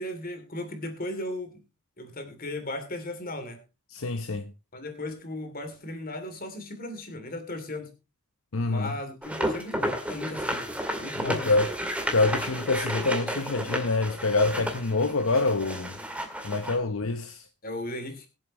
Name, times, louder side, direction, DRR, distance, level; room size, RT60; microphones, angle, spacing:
voice 1, 0.0-1.6 2.0-3.6 4.7-7.9 8.6-10.7 11.0-11.5 17.6-18.3, left 1 dB, 40° left, 2.7 m, -36 dB
voice 2, 3.9-4.5 8.5-8.9 11.2-11.7 12.1-15.9 16.4-17.4, left 3 dB, 70° left, 0.8 m, -26 dB
sound 1, 9.2-16.8, equal, 5° right, 2.1 m, -32 dB
21.5 x 7.6 x 3.0 m
head